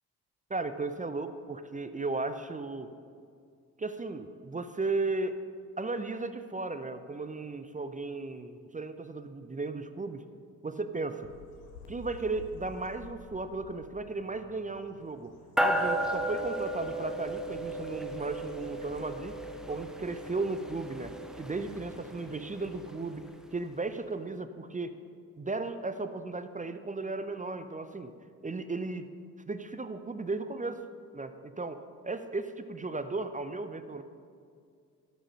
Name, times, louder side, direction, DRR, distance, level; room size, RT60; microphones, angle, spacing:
voice 1, 0.5-2.9 3.8-5.4 5.8-10.2 10.6-11.3 11.9-15.3 15.6-19.3 19.7-24.9 25.4-28.1 28.4-29.1 29.5-30.8 31.1-34.0, right 3 dB, 15° right, 10 dB, 0.6 m, -35 dB
sound 1, 11.2-19.0, left 3 dB, 80° left, 1.4 m, -53 dB
sound 2, 15.6-23.3, right 1 dB, ahead, 0.9 m, -34 dB
12.5 x 6.2 x 5.5 m, 2.2 s
figure-of-eight pair, 40°, 45 cm